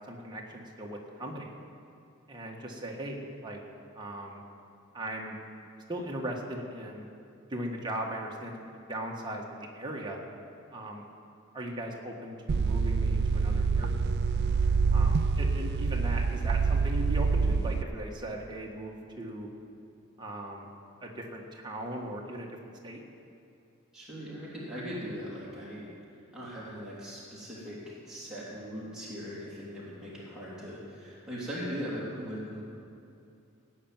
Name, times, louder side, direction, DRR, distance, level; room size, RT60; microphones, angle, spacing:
voice 1, 0.1-1.5 2.3-3.6 3.9-4.4 4.9-5.4 5.9-7.1 7.5-10.2 10.7-11.0 11.5-13.9 14.9-19.5 20.2-20.7 21.0-22.6 22.8-23.0, right 1 dB, 20° right, -1 dB, 1.7 m, -38 dB
sound 1, 12.5-17.8, right 4 dB, 50° right, 0.3 m, -26 dB
voice 2, 23.9-25.9 26.3-32.6, equal, 5° right, -9 dB, 3.1 m, -39 dB
17.0 x 6.0 x 9.1 m, 2.6 s
head